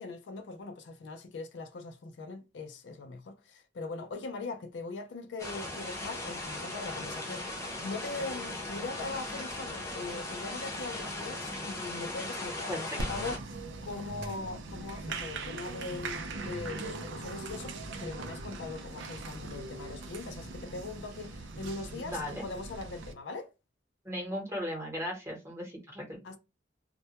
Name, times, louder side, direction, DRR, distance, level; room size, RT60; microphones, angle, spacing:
voice 1, 0.0-23.5 26.2-26.4, left 3 dB, 75° left, 0.4 m, -41 dB
sound 1, 5.4-13.4, left 2 dB, 15° left, 0.6 m, -38 dB
voice 2, 12.7-13.0 22.0-22.5 24.0-26.2, equal, 15° right, 0.9 m, -37 dB
Applause, 13.0-23.1, right 3 dB, 80° right, 0.4 m, -40 dB
2.2 x 2.1 x 2.8 m
head